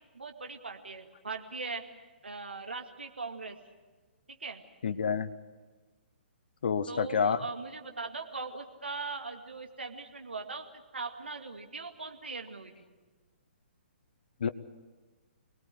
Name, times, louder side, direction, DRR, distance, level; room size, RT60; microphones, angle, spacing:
voice 1, 0.1-1.8 2.2-3.6 4.3-4.6 6.9-12.7, right 4 dB, 70° right, 4 dB, 2.2 m, -40 dB
voice 2, 4.8-5.3 6.6-7.4 14.4-14.5, left 6 dB, 55° left, 12 dB, 0.9 m, -28 dB
25.5 x 19.0 x 8.0 m, 1.3 s
figure-of-eight pair, 125°, 6 cm